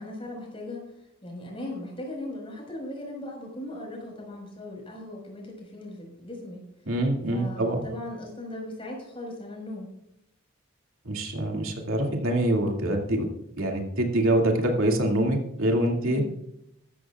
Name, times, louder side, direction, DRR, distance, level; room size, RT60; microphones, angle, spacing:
voice 1, 0.0-6.6 7.3-9.9 16.0-16.3, left 1 dB, 25° left, 0 dB, 5.2 m, -38 dB
voice 2, 6.9-7.8 11.0-13.3 13.6-16.2, right 1 dB, 75° right, 1 dB, 2.4 m, -25 dB
14.0 x 14.0 x 2.4 m, 0.81 s
head